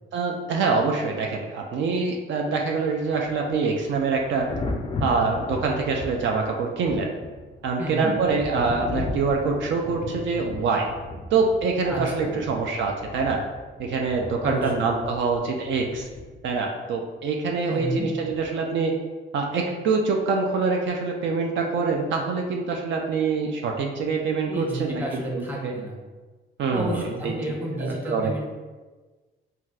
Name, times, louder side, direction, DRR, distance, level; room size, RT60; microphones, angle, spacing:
voice 1, 0.1-4.5 5.0-7.1 7.6-10.9 11.3-13.4 13.8-16.1 16.4-18.9 19.3-25.0 25.3-25.7 26.6-27.3 27.8-28.3, right 4 dB, 70° right, 1 dB, 0.4 m, -25 dB
Thunder, 3.0-16.7 18.3-18.5, left 2 dB, 25° left, 0.3 m, -36 dB
voice 2, 7.8-8.1 11.9-12.4 14.4-14.9 17.7-18.1 24.5-26.0 26.7-28.5, right 1 dB, 10° right, -2 dB, 0.8 m, -30 dB
3.9 x 2.3 x 2.3 m, 1.3 s
cardioid pair, 90°, 20 cm